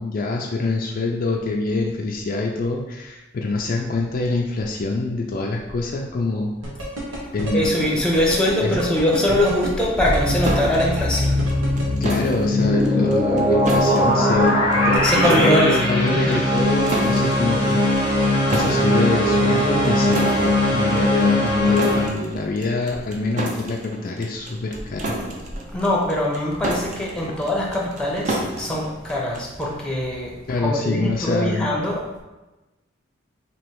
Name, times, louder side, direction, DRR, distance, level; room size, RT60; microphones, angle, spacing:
voice 1, 0.0-6.5 7.3-7.8 8.6-8.8 12.0-18.1 18.5-25.1 27.3-27.4 30.5-31.7, left 3 dB, 45° left, 0 dB, 0.4 m, -25 dB
sound 1, 6.6-11.8, right 2 dB, 90° right, 1.2 m, -30 dB
voice 2, 7.5-11.4 15.0-15.8 16.1-16.5 25.7-30.3 30.6-32.0, left 1 dB, 5° left, -3 dB, 0.7 m, -22 dB
sound 2, 10.0-22.1, left 1 dB, 25° right, 1.1 m, -20 dB
sound 3, 10.4-29.8, right 1 dB, 40° right, 0.6 m, -32 dB
3.1 x 2.9 x 4.5 m, 1.1 s
head